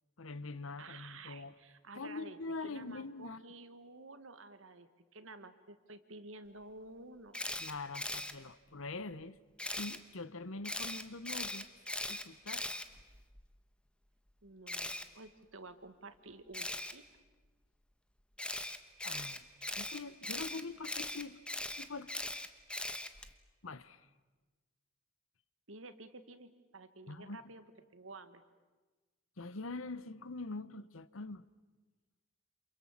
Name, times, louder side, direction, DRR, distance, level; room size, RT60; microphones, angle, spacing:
voice 1, 0.2-1.5 1.9-3.4 7.6-9.4 9.8-11.7 12.1-12.8 19.0-19.5 19.7-21.4 21.7-22.2 23.6-24.0 27.1-27.4 29.4-31.4, left 3 dB, 75° left, 15 dB, 1.0 m, -44 dB
voice 2, 0.8-2.4 2.6-7.4 14.4-17.0 25.7-27.6 27.9-28.4, right 2 dB, 75° right, 10 dB, 1.8 m, -52 dB
Camera, 7.3-8.3 9.6-10.0 10.6-13.4 14.7-15.0 16.5-16.9 18.4-23.3, left 1 dB, 5° left, 1.2 m, -40 dB
29.0 x 27.5 x 7.5 m, 1.3 s
head